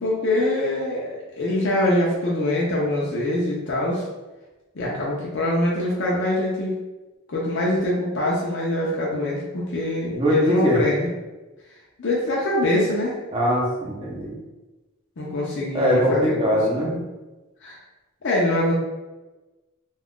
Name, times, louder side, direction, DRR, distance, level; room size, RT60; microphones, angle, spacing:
voice 1, 0.0-4.0 4.7-6.7 7.3-11.1 12.0-13.2 15.2-17.0 17.6-17.8 18.2-18.7, left 1 dB, 55° left, -4 dB, 0.6 m, -24 dB
voice 2, 10.1-10.8 13.3-14.4 15.7-16.9, equal, 25° right, -3 dB, 0.7 m, -21 dB
2.4 x 2.3 x 3.6 m, 1.1 s
head